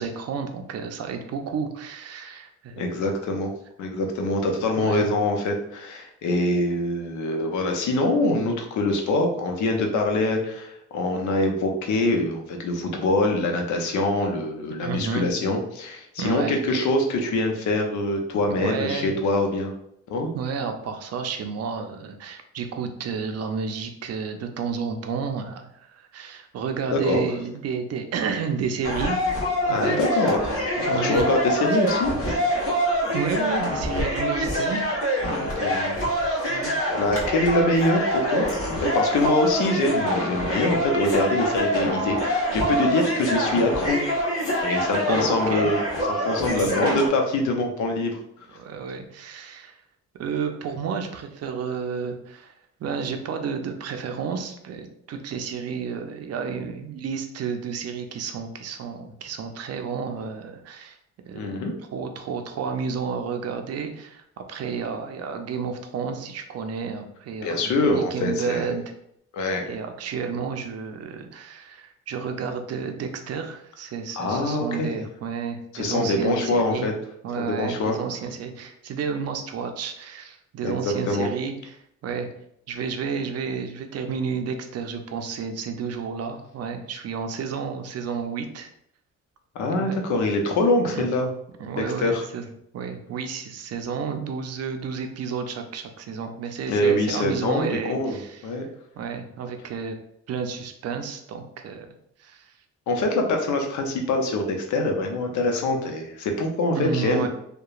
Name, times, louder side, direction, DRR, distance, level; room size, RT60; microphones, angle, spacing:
voice 1, 0.0-2.8 4.8-5.1 14.8-15.3 16.2-16.9 18.5-19.2 20.3-29.2 29.7-30.2 30.9-31.3 33.1-34.8 35.3-35.9 36.5-36.7 45.0-45.7 46.5-47.0 48.6-49.8 50.2-52.5 52.8-61.0 61.3-61.6 61.9-68.8 69.7-76.9 77.2-82.3 82.7-88.7 89.7-90.0 90.9-91.1 91.6-92.4 92.7-98.5 99.0-100.0 100.3-101.9 102.2-102.5 106.7-107.3, right 6 dB, 55° right, 6 dB, 0.5 m, -31 dB
voice 2, 2.8-3.5 3.8-19.7 20.1-20.3 26.9-27.2 29.7-30.5 30.9-32.1 35.6-36.0 36.9-38.5 38.8-44.0 44.6-45.8 46.2-48.2 61.3-61.7 67.4-68.7 69.3-69.6 74.2-75.0 75.7-76.9 77.4-78.0 80.6-81.3 89.5-91.3 92.0-92.2 96.7-98.6 102.9-107.3, left 2 dB, 70° left, 3 dB, 0.6 m, -24 dB
sound 1, 28.8-47.1, equal, 45° left, 1.1 m, -25 dB
2.9 x 2.1 x 2.4 m, 0.74 s
cardioid pair, 90°, 30 cm